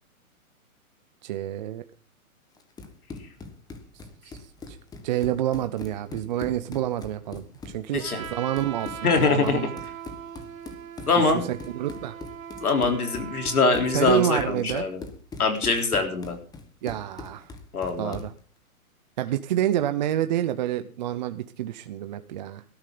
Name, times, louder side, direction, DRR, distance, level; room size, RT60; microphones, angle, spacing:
voice 1, 1.2-1.8 4.2-4.4 4.7-4.8 5.0-9.7 11.2-12.1 13.9-14.8 16.8-17.5 18.0-18.3 19.2-22.6, right 12 dB, 30° right, 10 dB, 0.6 m, -28 dB
Run, 2.6-18.4, left 3 dB, 10° left, 1.3 m, -41 dB
Trumpet, 8.0-14.6, right 9 dB, 65° right, 2.1 m, -40 dB
voice 2, 9.0-9.6 11.1-11.4 12.6-15.0 15.4-16.4 17.7-18.2, left 4 dB, 85° left, 4 dB, 3.7 m, -23 dB
18.5 x 13.0 x 3.8 m, 0.40 s
hypercardioid pair, 145°, 43 cm